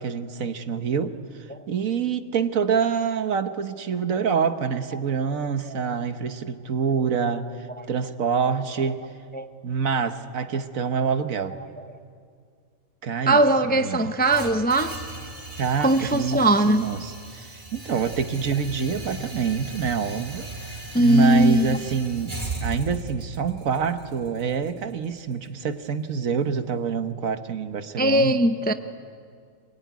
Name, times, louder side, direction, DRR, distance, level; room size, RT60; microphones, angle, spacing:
voice 1, 0.0-9.1 9.6-11.6 13.0-13.4 13.7-14.0 15.6-16.4 16.7-22.3 22.6-28.4, right 6 dB, 75° right, 1.5 m, -26 dB
voice 2, 13.3-15.0 15.8-16.8 20.9-21.8 28.0-28.7, right 1 dB, 10° left, 0.5 m, -20 dB
sound 1, 14.2-26.3, right 3 dB, 35° right, 3.1 m, -38 dB
25.5 x 23.0 x 9.5 m
omnidirectional pair, 1.4 m